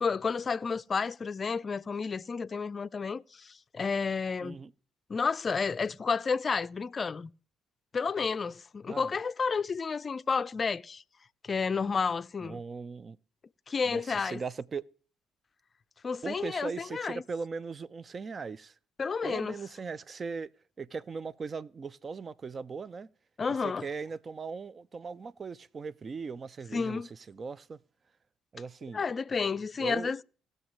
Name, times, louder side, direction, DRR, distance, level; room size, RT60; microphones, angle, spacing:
voice 1, 0.0-4.6 5.1-7.3 7.9-11.0 11.4-12.6 13.7-14.4 16.0-17.2 19.0-19.6 23.4-23.9 26.7-27.1 28.9-30.2, left 5 dB, 40° left, 0.4 m, -31 dB
voice 2, 4.4-4.7 8.9-9.1 12.4-13.2 13.9-14.9 16.2-18.7 19.2-20.5 20.8-23.1 23.8-27.8 28.5-29.0 29.8-30.1, right 5 dB, 40° right, 0.4 m, -39 dB
18.5 x 6.4 x 3.1 m
hypercardioid pair, 45°, 0 cm